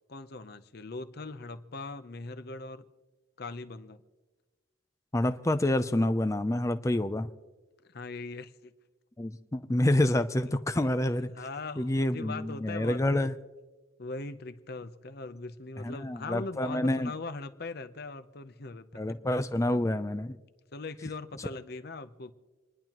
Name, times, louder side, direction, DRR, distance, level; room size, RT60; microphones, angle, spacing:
voice 1, 0.1-2.9 3.4-4.0 7.9-8.7 10.4-10.5 10.8-10.9 11.3-13.3 14.0-19.0 20.7-22.3, left 3 dB, 50° left, 11 dB, 0.7 m, -40 dB
voice 2, 5.1-7.3 9.2-11.3 11.8-13.3 15.8-17.1 19.0-20.4, left 1 dB, 15° left, 10 dB, 0.4 m, -28 dB
28.5 x 10.5 x 3.0 m, 1.2 s
head